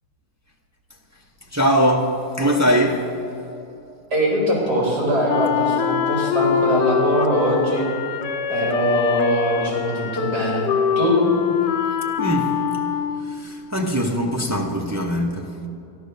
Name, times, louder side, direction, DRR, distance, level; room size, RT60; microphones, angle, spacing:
voice 1, 1.5-3.1 12.2-12.6 13.2-15.6, equal, 25° right, 0.4 m, -21 dB
voice 2, 4.1-7.9 8.5-10.6 11.0-11.2, right 1 dB, 70° right, 4.3 m, -22 dB
Wind instrument woodwind instrument, 5.3-13.4, left 8 dB, 85° left, 1.3 m, -23 dB
13.0 x 11.5 x 6.6 m
omnidirectional pair, 1.8 m